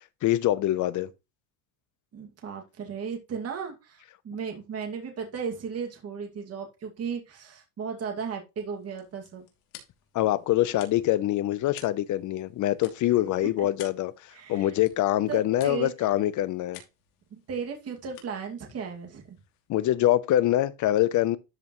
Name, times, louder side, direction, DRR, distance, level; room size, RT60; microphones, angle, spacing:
voice 1, 0.2-1.1 10.1-14.1 14.5-16.8 19.7-21.4, left 14 dB, 40° left, 0.8 m, -24 dB
voice 2, 2.1-9.5 13.2-13.3 13.6-13.7 14.3-14.7 15.3-16.1 17.3-19.4, right 6 dB, 30° right, 2.4 m, -35 dB
sound 1, 8.7-19.9, left 9 dB, 75° left, 3.0 m, -53 dB
12.5 x 5.2 x 3.2 m
cardioid pair, 130°, 47 cm